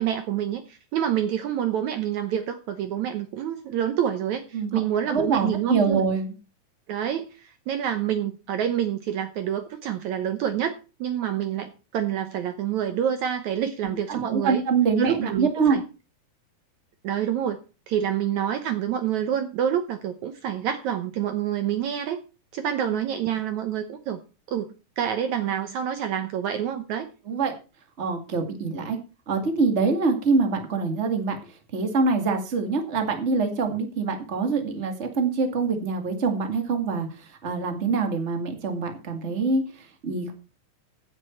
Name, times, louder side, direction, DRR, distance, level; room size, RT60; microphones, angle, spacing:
voice 1, 0.0-6.0 6.9-10.7 11.0-14.6 15.0-15.8 17.0-17.6 17.9-22.2 22.5-24.2 24.5-27.1, right 9 dB, 70° right, 8 dB, 2.1 m, -27 dB
voice 2, 5.1-6.3 14.1-15.8 22.9-23.0 27.3-27.5 28.0-29.0 29.3-31.4 31.7-39.6 40.0-40.3, right 4 dB, 25° right, 5 dB, 1.9 m, -24 dB
16.0 x 8.1 x 4.5 m, 0.33 s
omnidirectional pair, 3.8 m